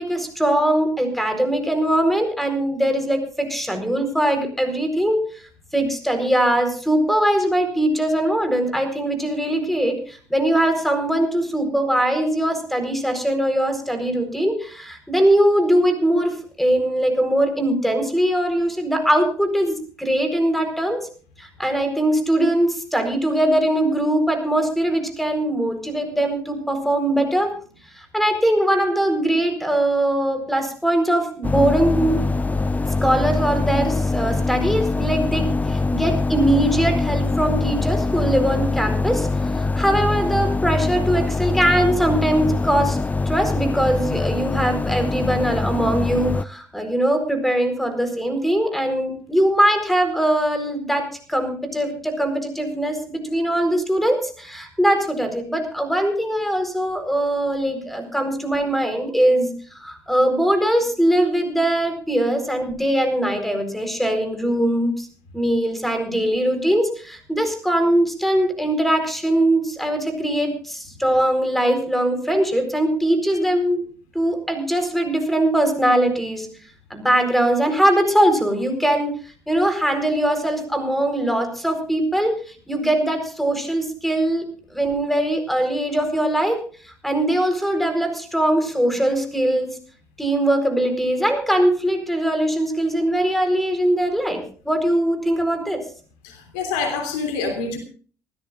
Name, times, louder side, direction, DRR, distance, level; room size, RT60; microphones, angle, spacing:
voice 1, 0.0-5.2 5.7-21.1 21.4-27.5 27.9-32.2 33.0-39.3 39.5-43.0 43.3-65.1 65.3-73.9 74.1-76.5 76.9-79.1 79.5-82.4 82.7-89.7 90.2-95.8, right 1 dB, ahead, 7 dB, 4.4 m, -21 dB
sound 1, 31.4-46.5, left 3 dB, 15° left, 0.6 m, -23 dB
voice 2, 96.2-97.8, left 4 dB, 65° left, 5 dB, 3.2 m, -26 dB
27.0 x 13.5 x 2.5 m, 0.40 s
figure-of-eight pair, 50°, 9 cm